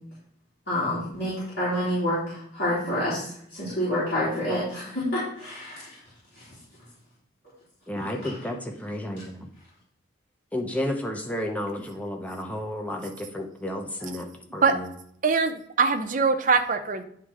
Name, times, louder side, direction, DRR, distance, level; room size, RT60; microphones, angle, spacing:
voice 1, 0.7-6.0 6.3-6.5 8.2-8.4, left 1 dB, 55° left, -11 dB, 3.2 m, -28 dB
voice 2, 7.9-9.5 10.5-14.9, left 1 dB, 10° left, 2 dB, 0.7 m, -32 dB
voice 3, 15.2-17.0, right 4 dB, 45° right, 7 dB, 0.6 m, -22 dB
9.7 x 3.7 x 4.8 m, 0.67 s
head